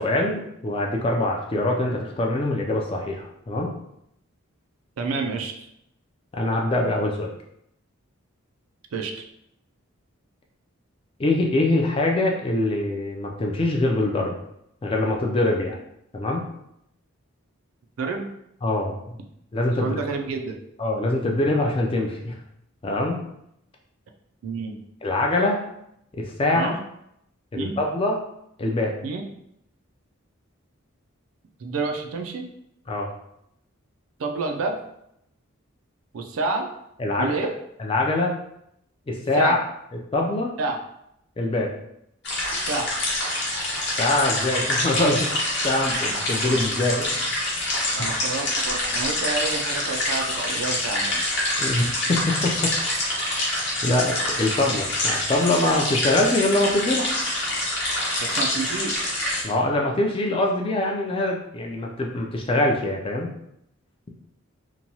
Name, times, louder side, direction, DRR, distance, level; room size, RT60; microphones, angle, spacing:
voice 1, 0.0-3.7 6.3-7.3 11.2-14.3 14.8-15.8 16.1-16.4 18.6-19.0 19.5-19.9 20.8-22.4 22.8-23.2 25.0-25.6 26.2-26.7 27.5-28.2 28.6-28.9 32.9-33.1 37.0-37.3 37.8-38.3 39.1-39.6 40.1-40.5 41.4-41.7 44.0-45.3 45.6-47.1 48.0-48.1 51.6-52.7 53.8-57.1 59.4-63.3, left 2 dB, 25° left, 0 dB, 0.3 m, -23 dB
voice 2, 5.0-5.7 8.9-9.2 18.0-18.3 19.8-20.6 24.4-24.8 26.5-26.8 27.5-27.8 29.0-29.2 31.6-32.4 34.2-34.8 36.1-36.7 37.2-37.5 39.3-39.6 40.6-40.8 42.7-42.9 47.9-51.2 58.2-59.1, right 3 dB, 75° right, 3 dB, 0.4 m, -29 dB
sound 1, 42.2-59.4, left 1 dB, 50° left, 0.8 m, -26 dB
2.9 x 2.2 x 2.7 m, 0.77 s
head